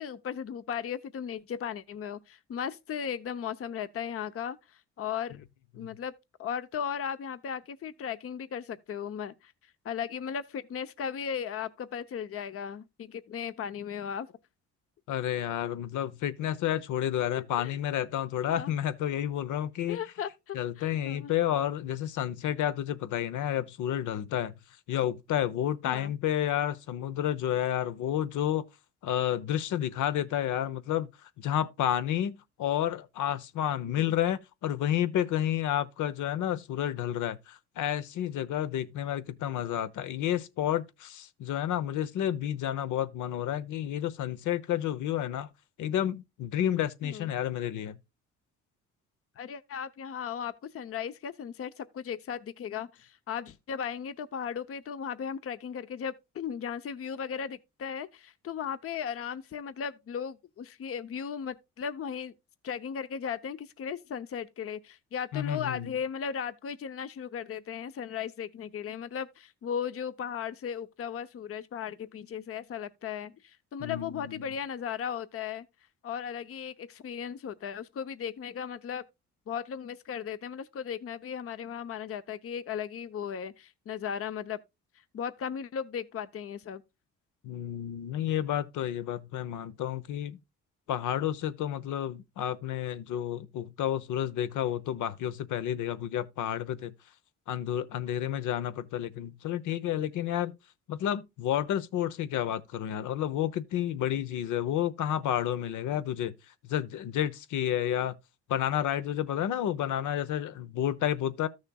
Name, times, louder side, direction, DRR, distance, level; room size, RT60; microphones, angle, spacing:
voice 1, 0.0-4.6 5.0-5.4 5.7-6.1 6.4-9.5 9.8-14.3 17.3-17.8 18.5-18.7 19.9-21.3 25.8-26.1 34.0-34.1 47.0-47.3 49.4-62.3 62.6-75.7 76.0-79.0 79.5-84.6 85.1-86.8, left 7 dB, 50° left, 0.7 m, -36 dB
voice 2, 15.1-20.0 20.5-24.5 24.9-28.6 29.0-31.1 31.4-45.5 45.8-48.0 65.3-66.0 73.8-74.5 87.4-90.4 90.9-96.9 97.5-100.5 100.9-106.3 106.6-108.1 108.5-111.5, left 11 dB, 80° left, 0.9 m, -30 dB
14.0 x 6.4 x 2.3 m
cardioid pair, 90°, 30 cm